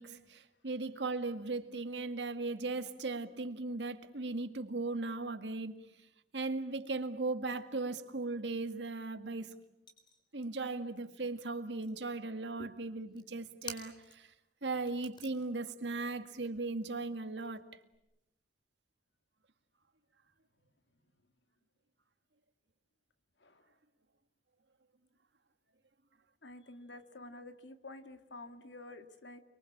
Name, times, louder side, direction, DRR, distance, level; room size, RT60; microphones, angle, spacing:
voice 1, 0.0-5.8 6.3-9.5 10.3-14.3 14.6-17.6, right 3 dB, 80° right, 2.0 m, -37 dB
sound 1, 6.6-7.6 7.9-11.4 11.6-12.2 13.1-14.4 14.7-18.0, left 3 dB, 25° left, 3.9 m, -53 dB
voice 2, 26.4-29.4, left 2 dB, 90° left, 2.1 m, -49 dB
29.5 x 23.0 x 8.6 m
head